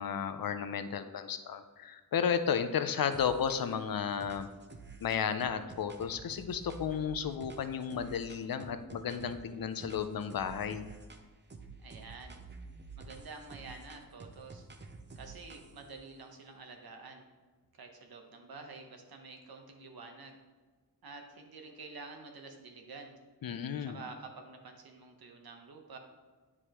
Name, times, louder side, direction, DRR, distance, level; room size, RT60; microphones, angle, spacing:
voice 1, 0.0-4.5 5.0-10.9 23.4-24.0, left 7 dB, 70° left, 9 dB, 0.6 m, -33 dB
sound 1, 3.1-3.8 4.2-9.5 9.8-11.2 11.5-15.9, right 3 dB, 30° right, 0.6 m, -50 dB
voice 2, 11.8-12.4 13.0-14.7 15.1-17.2 17.7-20.4 21.0-23.2 23.9-26.0, right 3 dB, 75° right, 4 dB, 1.0 m, -49 dB
9.8 x 4.8 x 3.0 m, 1.4 s
wide cardioid pair, 145°, 37 cm